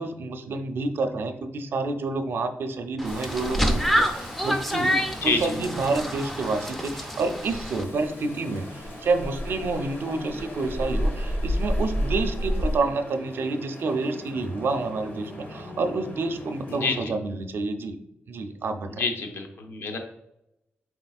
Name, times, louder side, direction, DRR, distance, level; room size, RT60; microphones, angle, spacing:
voice 1, 0.0-18.0 18.3-19.0, right 3 dB, 60° right, 7 dB, 0.4 m, -29 dB
Rain, 3.0-12.8, equal, 85° left, 1.3 m, -32 dB
sound 1, 3.0-7.8, equal, 5° left, 0.3 m, -28 dB
sound 2, 7.4-17.0, left 1 dB, 40° left, 0.9 m, -42 dB
voice 2, 16.7-17.1 19.0-20.0, left 4 dB, 65° left, 4 dB, 0.6 m, -27 dB
4.3 x 3.8 x 2.3 m, 0.84 s
wide cardioid pair, 165°, 4 cm